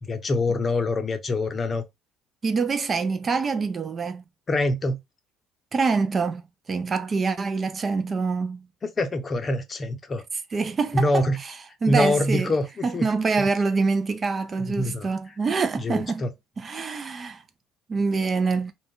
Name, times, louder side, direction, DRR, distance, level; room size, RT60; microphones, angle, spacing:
voice 1, 0.0-1.8 4.5-5.0 9.0-10.2 10.9-11.4 11.9-13.1 13.4-13.5 14.6-15.1 15.8-16.3, left 1 dB, 30° left, 0.6 m, -25 dB
voice 2, 2.4-4.2 5.7-8.7 10.5-11.5 11.8-12.5 12.8-16.3 16.6-17.4 17.9-18.7, right 4 dB, 35° right, 0.3 m, -25 dB
2.5 x 2.2 x 3.5 m
cardioid pair, 105°, 0 cm